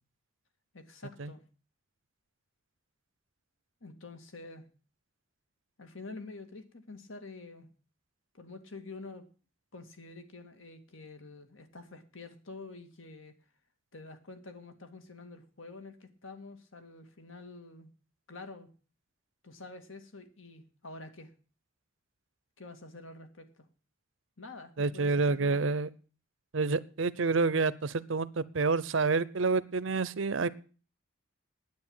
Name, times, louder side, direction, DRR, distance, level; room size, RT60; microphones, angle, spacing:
voice 1, 0.7-1.4 3.8-4.6 5.8-7.7 8.3-9.2 9.7-13.3 13.9-17.9 18.3-18.7 19.4-21.3 22.6-23.7 24.4-25.7, left 3 dB, 70° left, 7 dB, 2.1 m, -47 dB
voice 2, 24.8-25.9 26.5-30.5, right 4 dB, 70° right, 18 dB, 0.7 m, -28 dB
9.6 x 9.3 x 8.8 m, 0.39 s
head